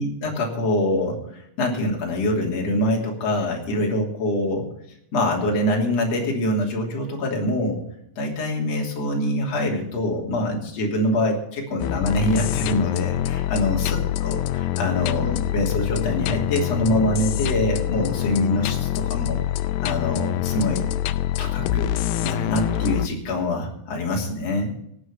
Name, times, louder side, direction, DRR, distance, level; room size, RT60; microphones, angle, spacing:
voice 1, 0.0-4.7 5.1-7.8 8.2-19.4 19.8-20.9 21.4-21.9 22.2-24.7, left 1 dB, 45° left, 0 dB, 3.9 m, -25 dB
sound 1, 11.8-23.1, left 12 dB, 80° left, 2.3 m, -25 dB
18.0 x 8.0 x 6.7 m, 0.74 s
omnidirectional pair, 4.2 m